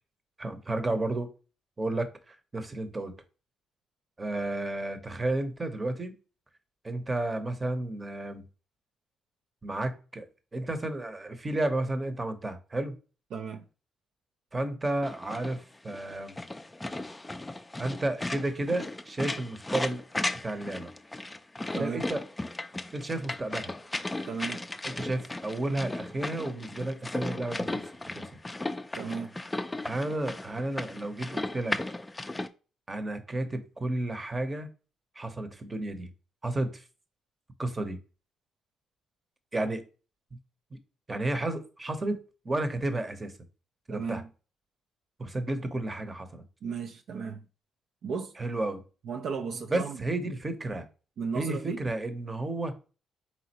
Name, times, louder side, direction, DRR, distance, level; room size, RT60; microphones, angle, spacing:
voice 1, 0.4-1.3 1.8-3.1 4.2-6.1 6.8-8.4 9.6-12.9 14.5-16.4 17.8-20.0 20.4-20.9 21.8-22.2 22.9-23.7 24.8-27.8 28.1-28.3 29.8-31.8 32.9-34.7 35.2-36.1 36.4-36.8 37.6-38.0 39.5-39.8 41.1-43.3 43.9-44.2 45.2-46.4 48.4-48.8 49.7-50.9 51.3-52.7, right 2 dB, 25° right, 0.8 m, -32 dB
voice 2, 13.3-13.6 21.7-22.1 24.3-24.6 28.9-29.3 43.9-44.3 46.6-47.4 48.0-48.3 49.0-50.0 51.2-51.8, right 5 dB, 70° right, 0.4 m, -35 dB
sound 1, 15.0-32.5, left 2 dB, 15° left, 0.4 m, -36 dB
4.2 x 3.7 x 2.9 m
cardioid pair, 90°, 0 cm